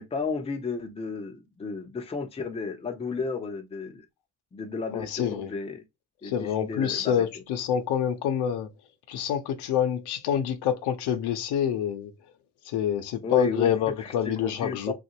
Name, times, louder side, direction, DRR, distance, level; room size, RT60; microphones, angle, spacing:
voice 1, 0.0-4.1 4.5-5.8 6.2-7.3 13.2-14.9, left 4 dB, 15° left, 0.5 m, -33 dB
voice 2, 4.9-5.5 6.2-8.7 9.1-12.1 12.6-14.9, left 9 dB, 75° left, 0.8 m, -27 dB
3.1 x 2.5 x 2.8 m
cardioid pair, 120°, 40 cm